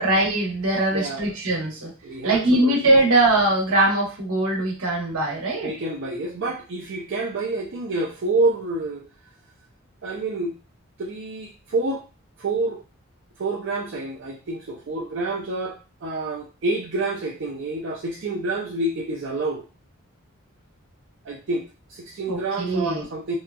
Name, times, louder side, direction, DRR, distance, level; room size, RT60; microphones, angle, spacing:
voice 1, 0.0-1.9 2.2-5.7 22.3-23.0, right 2 dB, 85° right, -3 dB, 1.0 m, -21 dB
voice 2, 0.9-1.3 2.0-2.7 5.6-9.1 10.0-10.6 11.0-12.0 12.4-12.8 13.4-19.6 21.2-21.6 21.9-23.3, right 2 dB, 55° right, -3 dB, 0.4 m, -28 dB
2.8 x 2.3 x 2.2 m, 0.32 s
head